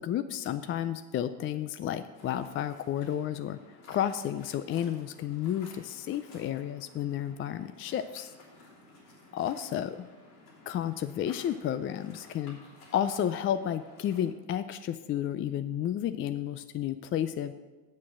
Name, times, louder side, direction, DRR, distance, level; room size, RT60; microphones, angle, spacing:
voice 1, 0.0-3.6 3.9-8.3 9.3-10.1 10.7-12.6 12.9-17.5, left 10 dB, 30° left, 10 dB, 0.4 m, -32 dB
Waves surf, 2.1-14.2, left 2 dB, 90° left, 3.4 m, -55 dB
8.4 x 7.5 x 6.0 m, 1.2 s
supercardioid pair, 100°, 43 cm